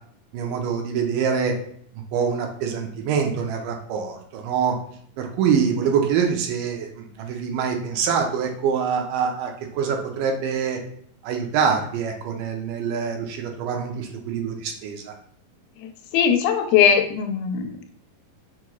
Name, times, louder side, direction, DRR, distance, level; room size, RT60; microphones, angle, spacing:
voice 1, 0.3-1.5 2.1-4.8 5.2-10.8 11.2-15.1, right 6 dB, 80° right, 2 dB, 2.0 m, -25 dB
voice 2, 16.1-17.9, left 7 dB, 90° left, 5 dB, 2.4 m, -20 dB
6.1 x 2.9 x 2.2 m, 0.64 s
omnidirectional pair, 4.1 m